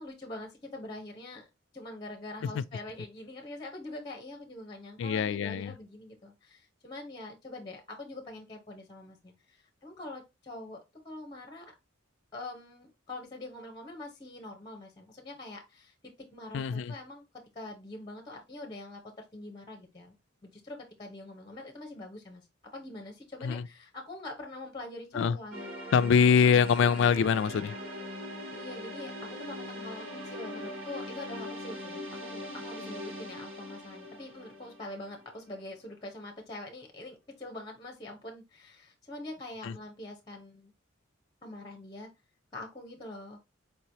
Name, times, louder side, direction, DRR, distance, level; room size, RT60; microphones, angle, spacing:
voice 1, 0.0-1.5 1.7-10.8 11.0-11.7 12.3-17.2 17.5-20.1 20.4-22.5 22.7-25.7 28.5-40.7 41.4-42.1 42.5-43.4, left 2 dB, 20° left, 0.8 m, -44 dB
voice 2, 5.0-5.7 16.5-16.9 23.4-23.7 25.1-25.4 25.9-27.8 39.6-39.7, left 6 dB, 60° left, 0.3 m, -24 dB
sound 1, 25.5-35.5, left 1 dB, 80° right, 2.1 m, -41 dB
4.6 x 3.0 x 2.7 m
head